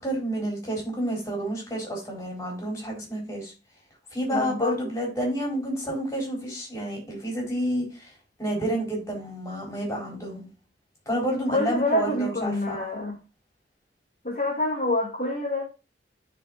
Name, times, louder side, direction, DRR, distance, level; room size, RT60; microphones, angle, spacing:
voice 1, 0.0-3.5 4.1-8.1 8.4-10.5 11.1-12.8, equal, 15° left, -1 dB, 4.4 m, -29 dB
voice 2, 4.3-4.8 11.5-13.2 14.2-15.6, left 1 dB, 45° left, -4 dB, 2.2 m, -26 dB
13.0 x 5.0 x 2.6 m, 0.29 s
head